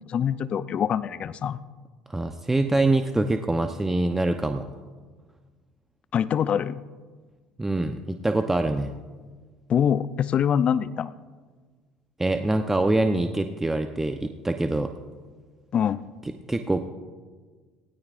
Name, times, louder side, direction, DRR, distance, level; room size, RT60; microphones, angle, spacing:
voice 1, 0.0-1.6 6.1-6.8 9.7-11.1 15.7-16.0, left 8 dB, 45° left, 16 dB, 0.6 m, -24 dB
voice 2, 2.1-4.7 7.6-8.9 12.2-14.9 16.5-16.8, right 2 dB, 15° right, 6 dB, 0.8 m, -24 dB
19.0 x 17.0 x 2.5 m, 1.4 s
hypercardioid pair, 65°, 3 cm